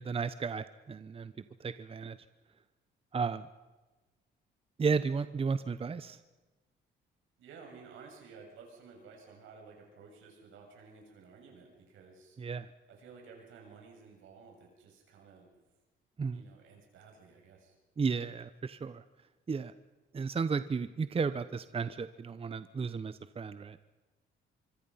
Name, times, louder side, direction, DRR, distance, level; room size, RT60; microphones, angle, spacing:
voice 1, 0.0-1.3 1.6-2.2 3.1-3.5 4.8-6.2 12.4-12.7 16.2-16.4 18.0-19.0 19.5-19.7 20.1-23.8, right 5 dB, 30° right, 13 dB, 0.8 m, -33 dB
voice 2, 7.4-12.4 12.9-15.5 16.3-17.7, right 5 dB, 85° right, 1 dB, 7.2 m, -54 dB
25.0 x 24.5 x 5.7 m, 1.2 s
cardioid pair, 90°, 20 cm